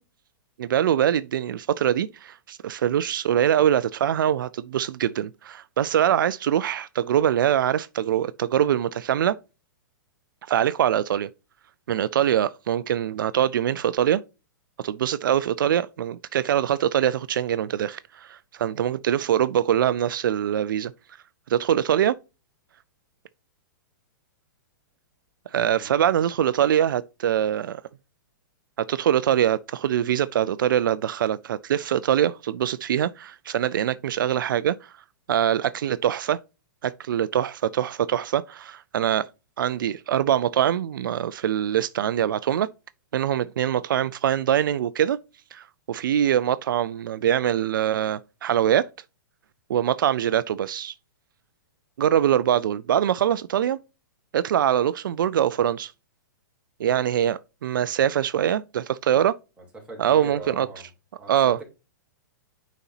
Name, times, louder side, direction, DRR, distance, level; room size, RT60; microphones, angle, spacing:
voice 1, 0.6-9.4 10.5-11.3 11.9-14.2 14.8-20.9 21.5-22.2 25.5-27.8 28.8-34.9 35.3-36.4 36.8-39.3 39.6-42.7 43.1-45.2 45.5-48.9 49.7-50.9 52.0-53.8 54.3-55.9 56.8-59.4 60.0-60.7 61.3-61.6, right 10 dB, 75° right, 0.4 m, -23 dB
voice 2, 25.5-26.1 59.6-60.9 61.2-61.6, right 2 dB, 10° right, 3.1 m, -41 dB
9.6 x 4.1 x 2.7 m
hypercardioid pair, 140°, 11 cm